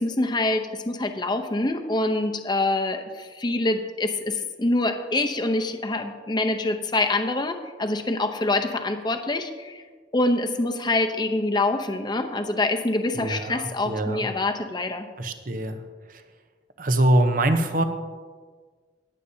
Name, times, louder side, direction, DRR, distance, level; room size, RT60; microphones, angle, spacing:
voice 1, 0.0-9.8 10.1-15.1, left 2 dB, 25° left, 5 dB, 0.7 m, -25 dB
voice 2, 13.2-14.3 15.2-15.8 16.8-17.8, right 1 dB, 50° right, 8 dB, 0.8 m, -23 dB
21.0 x 8.2 x 2.8 m, 1.5 s
head